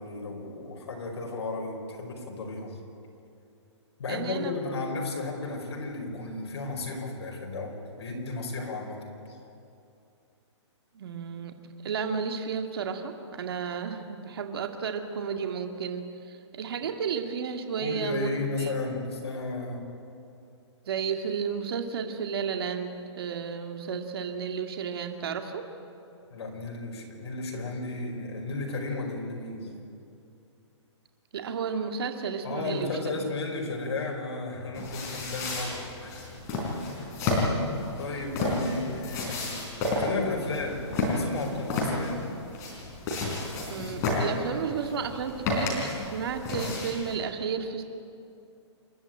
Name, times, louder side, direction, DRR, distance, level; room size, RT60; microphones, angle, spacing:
voice 1, 0.0-2.8 4.0-9.4 17.8-19.8 26.3-29.7 32.4-36.3 38.0-39.6 39.8-40.8 41.1-42.3, left 3 dB, 65° left, 1 dB, 5.1 m, -34 dB
voice 2, 4.1-4.6 10.9-11.5 11.8-18.3 18.6-18.7 20.9-25.7 31.3-32.9 33.1-33.3 38.7-38.8 43.7-47.8, right 6 dB, 55° right, 5 dB, 2.1 m, -32 dB
sound 1, 34.7-47.1, left 2 dB, 20° left, 4.1 m, -31 dB
28.0 x 11.5 x 9.0 m, 2.6 s
hypercardioid pair, 170°, 15 cm